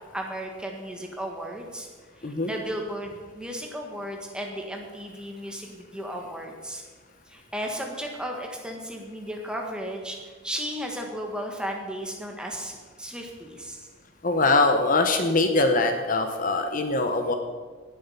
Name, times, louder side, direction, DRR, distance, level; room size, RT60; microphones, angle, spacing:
voice 1, 0.0-1.9 2.2-6.8 7.3-13.9, equal, 5° right, 1 dB, 1.6 m, -35 dB
voice 2, 14.2-17.3, left 3 dB, 40° left, 6 dB, 1.0 m, -22 dB
17.5 x 7.5 x 5.7 m, 1.4 s
head